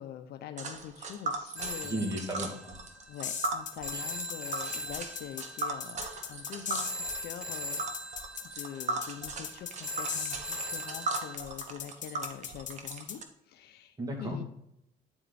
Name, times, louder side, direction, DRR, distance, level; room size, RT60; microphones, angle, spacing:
voice 1, 0.0-2.1 3.1-6.0 6.3-6.9 7.2-13.2 13.5-14.4, left 10 dB, 70° left, 8 dB, 0.8 m, -44 dB
Tick, 0.6-13.2, right 3 dB, 45° right, 1.3 m, -38 dB
Telephone, 1.6-11.4, equal, 5° right, 0.9 m, -41 dB
voice 2, 1.8-2.7 3.9-4.0 14.0-14.4, equal, 20° right, 1 dB, 2.4 m, -35 dB
sound 1, 3.2-13.2, left 7 dB, 50° left, 1.2 m, -38 dB
9.7 x 4.6 x 4.0 m, 0.80 s
cardioid pair, 110°, 17 cm